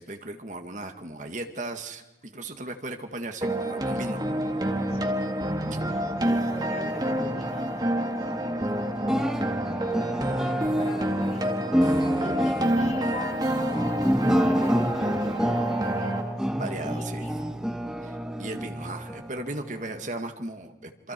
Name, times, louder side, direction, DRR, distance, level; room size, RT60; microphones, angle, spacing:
voice 1, 0.0-4.2 16.5-17.3 18.0-21.1, right 2 dB, 45° right, 5 dB, 1.9 m, -36 dB
voice 2, 2.3-2.6 4.9-5.2 5.9-8.1 8.4-14.2 14.5-17.5, left 2 dB, 35° left, 1 dB, 3.8 m, -43 dB
sound 1, 3.4-16.2, right 1 dB, 20° right, 1.9 m, -28 dB
sound 2, 5.5-20.1, equal, 5° right, 1.2 m, -29 dB
28.0 x 26.5 x 4.6 m, 1.0 s
head